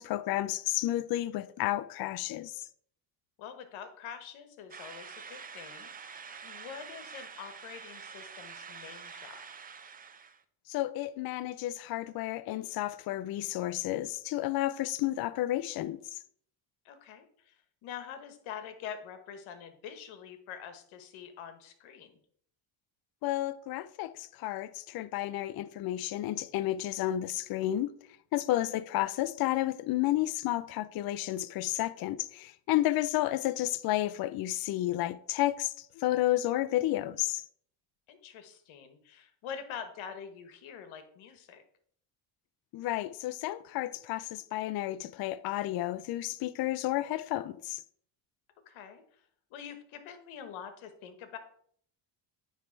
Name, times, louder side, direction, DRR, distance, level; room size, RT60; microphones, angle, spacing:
voice 1, 0.0-2.7 10.7-16.2 23.2-27.9 28.3-37.4 42.7-47.8, left 15 dB, 50° left, 0.5 m, -31 dB
voice 2, 3.4-9.4 16.8-22.2 28.7-28.8 38.1-41.6 48.7-49.0 49.5-51.4, left 8 dB, 75° left, 1.3 m, -45 dB
sound 1, 4.7-10.4, right 6 dB, 20° right, 0.4 m, -46 dB
9.3 x 3.4 x 4.5 m
cardioid pair, 105°, 48 cm